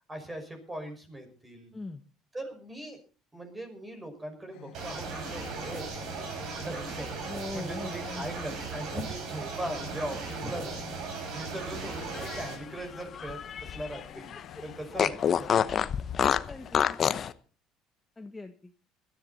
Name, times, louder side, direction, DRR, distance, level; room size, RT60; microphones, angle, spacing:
voice 1, 0.1-1.7 2.3-3.0 3.3-10.8 11.3-14.3 14.6-15.5, right 1 dB, 15° right, 6 dB, 5.7 m, -40 dB
voice 2, 1.7-2.0 7.3-8.5 16.5-17.0 18.2-18.7, left 2 dB, 15° left, 5 dB, 1.3 m, -41 dB
sound 1, 4.5-16.7, left 10 dB, 75° left, 2.3 m, -49 dB
sound 2, 4.7-12.6, right 4 dB, 65° right, 6.2 m, -37 dB
Fart, 12.0-14.0 14.3-14.4 15.0-17.3, left 8 dB, 40° left, 0.9 m, -27 dB
20.5 x 13.5 x 4.1 m, 0.37 s
cardioid pair, 115°, 0 cm